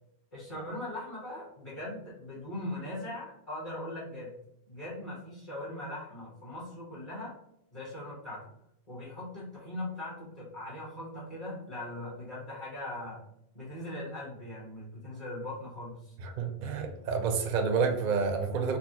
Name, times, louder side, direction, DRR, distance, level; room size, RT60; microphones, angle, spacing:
voice 1, 0.3-4.3 4.7-7.3 7.7-8.4 8.9-13.2 13.5-16.1, left 1 dB, 30° left, -9 dB, 1.3 m, -40 dB
voice 2, 16.2-18.8, right 5 dB, 55° right, 5 dB, 0.6 m, -29 dB
4.0 x 2.3 x 2.8 m, 0.76 s
omnidirectional pair, 1.1 m